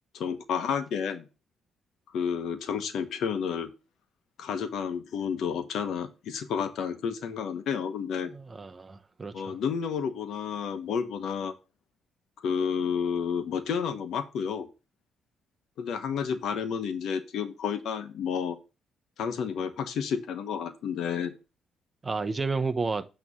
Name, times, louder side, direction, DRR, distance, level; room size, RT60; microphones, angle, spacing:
voice 1, 0.1-1.2 2.1-3.7 4.4-8.3 9.3-11.5 12.4-14.7 15.8-18.6 19.2-21.3, left 7 dB, 75° left, 1.0 m, -31 dB
voice 2, 8.3-9.6 22.0-23.0, right 4 dB, 30° right, 0.7 m, -31 dB
8.5 x 3.1 x 5.3 m
cardioid pair, 90°, 0 cm